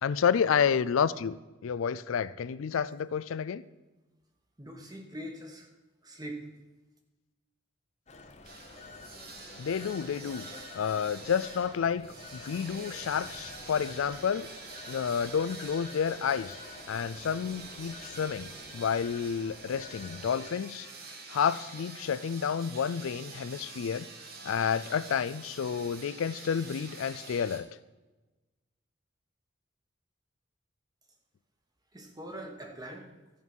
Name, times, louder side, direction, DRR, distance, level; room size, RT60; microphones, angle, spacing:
voice 1, 0.0-1.4 1.6-3.6 9.6-10.4 10.8-14.5 14.9-16.6 16.9-20.9 21.3-24.1 24.4-27.7, left 7 dB, 85° left, 17 dB, 0.4 m, -30 dB
voice 2, 4.6-5.7 6.0-6.5 31.9-33.1, right 1 dB, 20° right, 2 dB, 1.3 m, -42 dB
Telephone, 8.1-20.5, left 4 dB, 35° left, 0.8 m, -49 dB
sound 1, 8.4-27.6, right 4 dB, 50° right, 1.4 m, -47 dB
13.5 x 5.5 x 6.2 m, 1.1 s
head